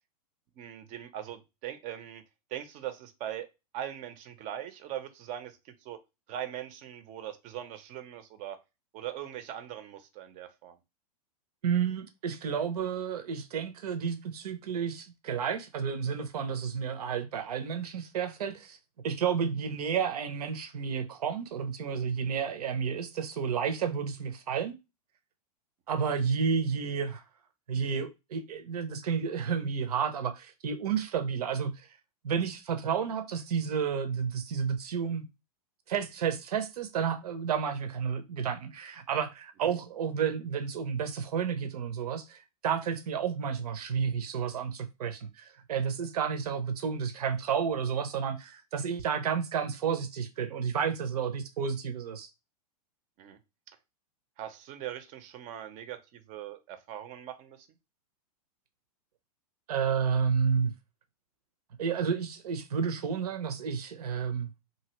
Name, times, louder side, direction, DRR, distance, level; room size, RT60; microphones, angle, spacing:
voice 1, 0.6-2.2 2.5-3.5 3.7-6.0 6.3-8.6 8.9-10.8 53.2-53.4 54.4-57.7, right 11 dB, 40° right, 0.7 m, -41 dB
voice 2, 11.6-18.8 19.0-24.7 25.9-27.2 27.7-31.8 32.2-35.2 35.9-52.3 59.7-60.7 61.8-64.5, right 7 dB, 70° right, 0.7 m, -31 dB
2.8 x 2.7 x 3.0 m
hypercardioid pair, 105°, 20 cm